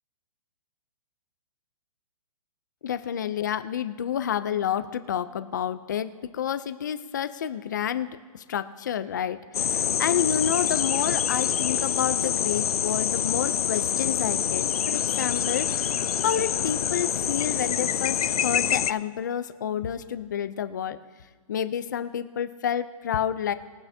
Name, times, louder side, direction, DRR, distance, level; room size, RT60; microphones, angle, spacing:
voice 1, 2.8-15.9 16.2-21.0 21.5-23.5, left 9 dB, 30° left, 12 dB, 0.5 m, -29 dB
sound 1, 9.5-18.9, left 9 dB, 85° left, 0.5 m, -26 dB
21.5 x 9.2 x 2.7 m, 1.5 s
hypercardioid pair, 175°, 19 cm